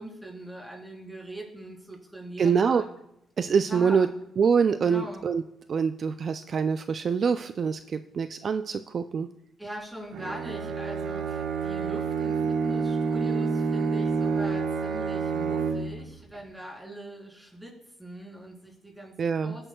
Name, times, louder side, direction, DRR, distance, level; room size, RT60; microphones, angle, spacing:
voice 1, 0.0-2.9 3.7-4.2 4.8-5.2 9.6-17.7 18.0-19.7, right 1 dB, 5° right, -1 dB, 3.6 m, -41 dB
voice 2, 2.4-2.8 3.4-4.1 4.4-5.4 5.7-9.3 19.2-19.6, right 6 dB, 50° right, 10 dB, 0.4 m, -25 dB
Bowed string instrument, 10.1-16.1, right 5 dB, 75° right, 1.1 m, -28 dB
16.0 x 8.9 x 2.3 m, 0.82 s
cardioid pair, 90°, 0 cm